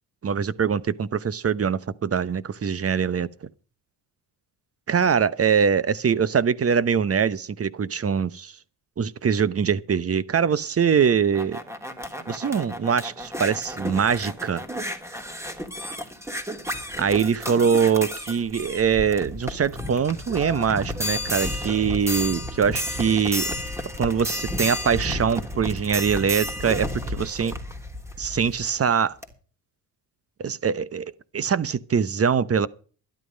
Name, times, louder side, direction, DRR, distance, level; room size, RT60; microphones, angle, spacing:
voice 1, 0.2-3.3 4.9-8.5 9.0-11.6 12.3-14.6 17.0-23.5 24.0-27.5 28.2-29.2 30.4-32.7, right 7 dB, 30° right, 1.0 m, -23 dB
sound 1, 11.0-28.7 29.2-29.3, left 1 dB, 5° right, 3.1 m, -32 dB
12.5 x 12.0 x 5.3 m
supercardioid pair, 70°, 44 cm